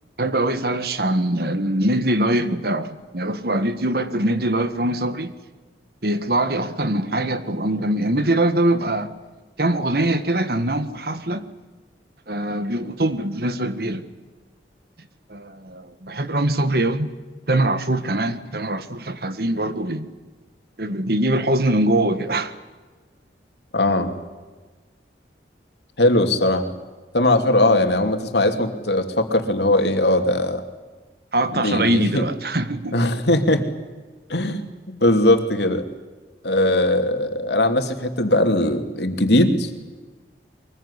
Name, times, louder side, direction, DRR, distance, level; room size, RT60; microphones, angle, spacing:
voice 1, 0.2-5.3 6.0-9.1 9.6-11.5 12.3-14.0 15.3-17.1 17.5-20.1 20.8-22.5 31.3-33.0, right 1 dB, 55° right, 11 dB, 1.7 m, -22 dB
voice 2, 23.7-24.1 26.0-26.6 27.1-30.6 31.5-32.3 32.9-33.6 34.3-35.9 36.4-39.7, left 1 dB, 70° left, 6 dB, 2.8 m, -19 dB
23.5 x 21.0 x 9.9 m, 1.3 s
head